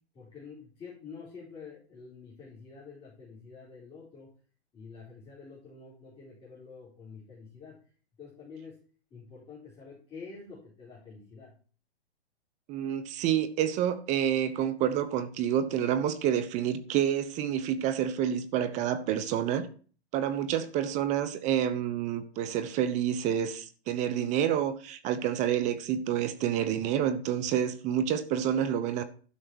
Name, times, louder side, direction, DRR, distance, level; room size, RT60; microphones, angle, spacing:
voice 1, 0.1-4.3 4.7-7.8 8.2-8.8 9.1-11.5, left 5 dB, 15° left, 4.2 m, -48 dB
voice 2, 12.7-19.7 20.1-29.0, right 9 dB, 20° right, 0.8 m, -28 dB
11.5 x 6.4 x 6.1 m
hypercardioid pair, 135°, 33 cm